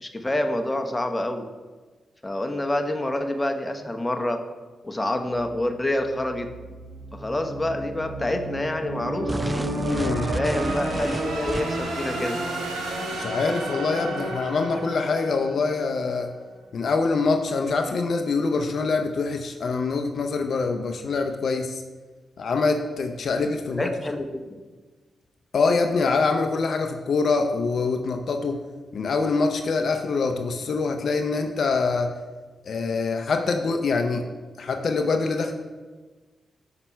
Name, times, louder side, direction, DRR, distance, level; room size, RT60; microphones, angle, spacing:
voice 1, 0.0-1.5 2.2-4.4 4.8-6.5 7.1-9.3 10.3-12.4 23.7-24.6, left 1 dB, 20° left, 5 dB, 1.0 m, -27 dB
sound 1, 5.4-16.2, right 1 dB, 80° right, 1.4 m, -32 dB
sound 2, 9.3-11.9, right 1 dB, 15° right, 0.3 m, -32 dB
voice 2, 9.8-10.3 13.2-16.3 16.7-21.8 22.4-23.9 25.5-28.6 28.9-32.1 32.7-34.3 34.6-35.5, left 4 dB, 65° left, 5 dB, 0.6 m, -24 dB
5.8 x 5.8 x 4.5 m, 1.3 s
supercardioid pair, 40°, 0 cm